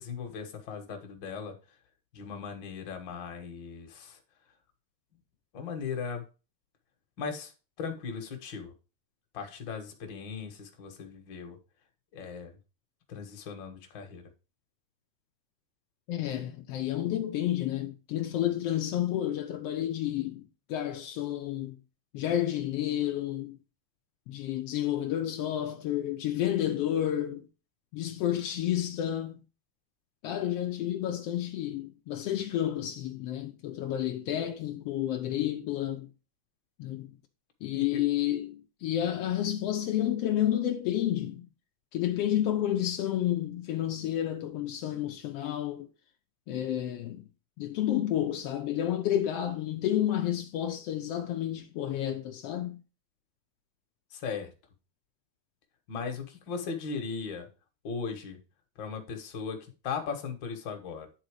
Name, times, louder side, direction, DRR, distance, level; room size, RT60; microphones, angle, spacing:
voice 1, 0.0-1.6 2.1-4.2 5.5-6.3 7.2-7.5 7.8-8.7 9.3-11.6 12.1-12.6 13.1-14.3 37.7-38.0 54.1-54.5 55.9-57.5 57.8-58.4 58.8-61.1, left 5 dB, 50° left, 1.4 m, -38 dB
voice 2, 16.1-21.8 22.1-23.6 24.3-27.5 27.9-29.4 30.2-36.1 36.8-37.1 37.6-41.5 41.9-45.9 46.5-47.3 47.6-52.8, left 12 dB, 85° left, 1.3 m, -30 dB
9.8 x 3.9 x 4.8 m
omnidirectional pair, 3.6 m